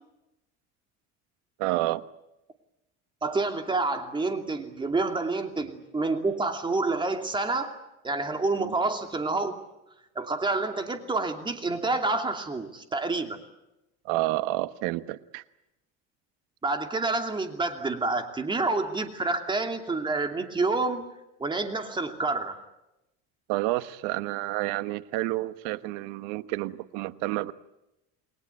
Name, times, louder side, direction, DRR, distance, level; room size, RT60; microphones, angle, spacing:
voice 1, 1.6-2.0 8.6-8.7 14.0-15.4 23.5-27.5, right 18 dB, 85° right, 13 dB, 1.3 m, -29 dB
voice 2, 3.2-7.8 8.0-9.5 10.1-13.4 16.6-21.0 21.4-22.6, right 3 dB, 15° right, 5 dB, 2.7 m, -28 dB
29.0 x 21.5 x 8.3 m, 0.91 s
cardioid pair, 150°, 32 cm